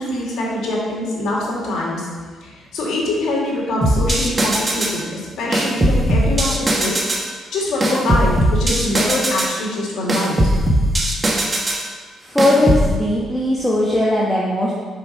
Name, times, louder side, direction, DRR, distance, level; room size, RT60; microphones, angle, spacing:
voice 1, 0.0-2.1 2.4-7.1 7.5-10.5, left 1 dB, 75° left, -4 dB, 2.3 m, -24 dB
sound 1, 3.8-5.0 5.5-7.3 7.8-9.6 10.1-11.9 12.4-12.9, right 1 dB, 25° right, 1.1 m, -19 dB
voice 2, 12.2-14.7, left 1 dB, 10° left, -6 dB, 1.2 m, -18 dB
5.6 x 5.2 x 5.8 m, 1.5 s
cardioid pair, 90°, 0 cm